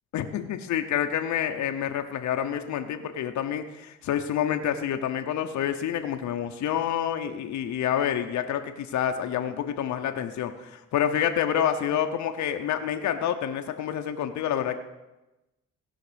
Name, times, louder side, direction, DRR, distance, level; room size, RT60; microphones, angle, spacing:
voice 1, 0.1-14.8, left 9 dB, 70° left, 6 dB, 0.8 m, -28 dB
17.0 x 5.8 x 5.1 m, 1.0 s
cardioid pair, 90°, 30 cm